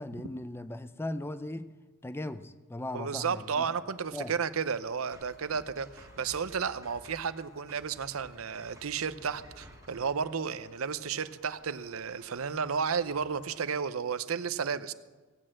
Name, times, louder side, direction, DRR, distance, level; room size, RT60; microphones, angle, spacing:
voice 1, 0.0-1.7 2.0-3.7 4.1-4.3, left 1 dB, 10° left, 12 dB, 0.5 m, -38 dB
sound 1, 2.8-13.6, left 2 dB, 50° left, 1.4 m, -61 dB
voice 2, 2.9-14.9, right 6 dB, 75° right, 13 dB, 0.7 m, -33 dB
sound 2, 5.1-10.3, right 1 dB, 15° right, 1.6 m, -54 dB
17.0 x 8.7 x 7.6 m, 1.3 s
head